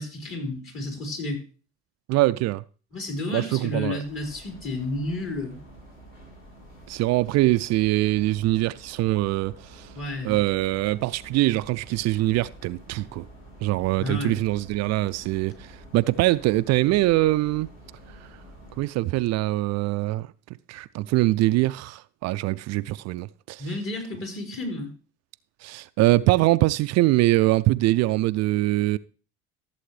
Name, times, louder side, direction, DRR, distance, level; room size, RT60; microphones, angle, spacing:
voice 1, 0.0-1.4 2.9-5.6 9.9-10.4 14.0-14.4 23.6-24.9, left 2 dB, 40° left, 5.0 m, -31 dB
voice 2, 2.1-2.6 3.3-4.0 6.9-9.9 10.2-13.3 13.6-17.7 18.8-20.3 20.7-23.6 25.6-29.0, right 17 dB, 55° right, 0.4 m, -23 dB
sound 1, 4.0-18.8, right 1 dB, 75° left, 5.1 m, -48 dB
14.5 x 7.7 x 3.3 m
hypercardioid pair, 65°, 33 cm